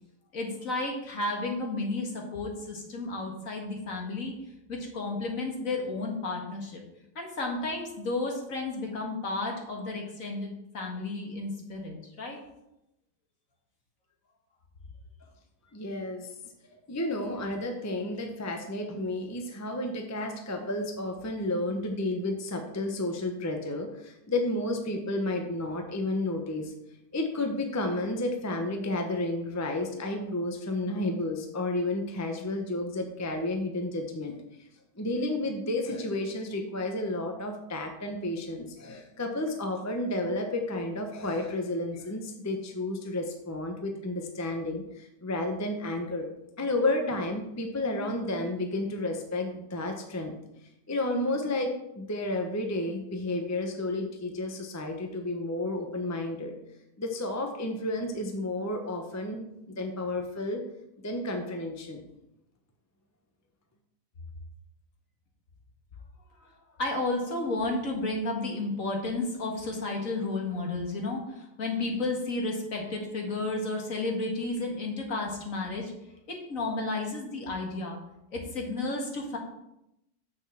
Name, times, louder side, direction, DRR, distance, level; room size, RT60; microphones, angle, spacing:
voice 1, 0.3-4.3 4.7-6.8 7.2-12.4 66.4-66.5 66.8-75.9 76.3-78.0 78.3-79.4, left 2 dB, 60° left, 1 dB, 2.1 m, -32 dB
voice 2, 15.7-16.3 16.9-26.7 27.1-34.3 35.0-46.3 46.6-50.4 50.9-56.5 57.0-60.6 61.0-62.0, left 2 dB, 15° left, 3 dB, 0.8 m, -31 dB
6.4 x 6.4 x 7.2 m, 0.85 s
omnidirectional pair, 1.7 m